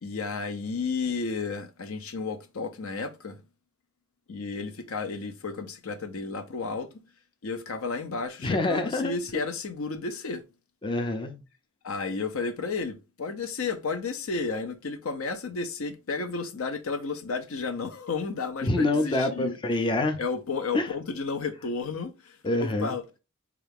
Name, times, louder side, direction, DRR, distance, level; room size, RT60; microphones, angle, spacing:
voice 1, 0.0-3.4 4.3-7.0 7.4-10.4 11.8-19.6 20.2-23.0, left 4 dB, 70° left, 0.6 m, -32 dB
voice 2, 8.4-9.1 10.8-11.4 18.6-20.2 20.7-20.9 22.4-22.9, left 2 dB, 25° left, 0.4 m, -26 dB
4.5 x 2.4 x 3.4 m
head